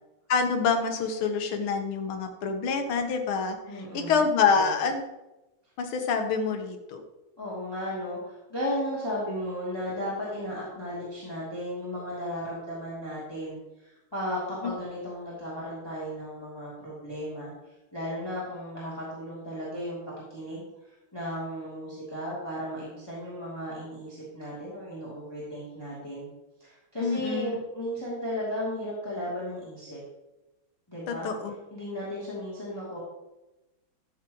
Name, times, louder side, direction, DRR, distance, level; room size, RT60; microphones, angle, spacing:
voice 1, 0.3-3.6 3.9-5.0 5.8-7.0 14.6-14.7 27.0-27.6 31.1-31.5, left 5 dB, 75° left, 5 dB, 1.9 m, -26 dB
voice 2, 3.7-4.2 4.5-4.7 7.4-17.5 17.9-20.0 20.3-20.7 21.1-26.3 26.6-30.0 30.9-31.3 31.7-33.0, equal, 10° left, -8 dB, 2.8 m, -35 dB
13.5 x 7.4 x 3.0 m, 1.0 s
omnidirectional pair, 2.4 m